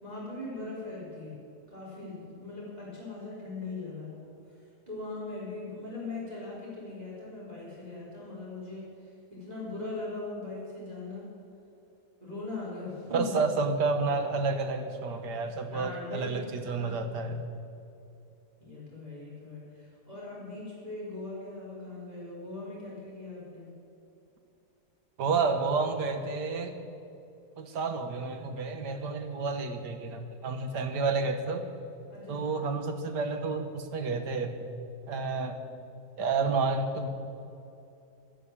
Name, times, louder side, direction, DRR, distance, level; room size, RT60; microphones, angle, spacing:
voice 1, 0.0-1.4 1.7-11.3 12.2-13.4 15.7-16.4 16.7-17.4 18.6-23.7 32.1-32.5, left 3 dB, 25° right, -7 dB, 3.8 m, -40 dB
voice 2, 13.1-17.4 25.2-26.8 27.6-31.6 32.3-34.6 35.1-35.6 36.2-37.1, right 4 dB, 85° right, 6 dB, 1.8 m, -30 dB
12.0 x 11.5 x 8.6 m, 2.7 s
omnidirectional pair, 1.8 m